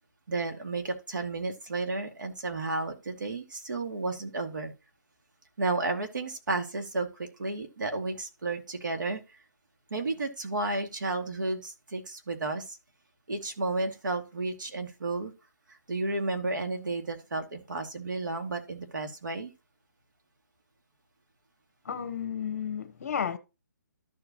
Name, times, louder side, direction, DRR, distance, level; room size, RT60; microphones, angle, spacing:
voice 1, 0.3-4.7 5.6-9.2 9.9-12.8 13.3-15.3 15.7-19.5, right 2 dB, 80° right, 2.4 m, -32 dB
voice 2, 21.8-23.4, left 8 dB, 50° left, 1.1 m, -32 dB
13.5 x 5.0 x 3.0 m
hypercardioid pair, 165°, 10 cm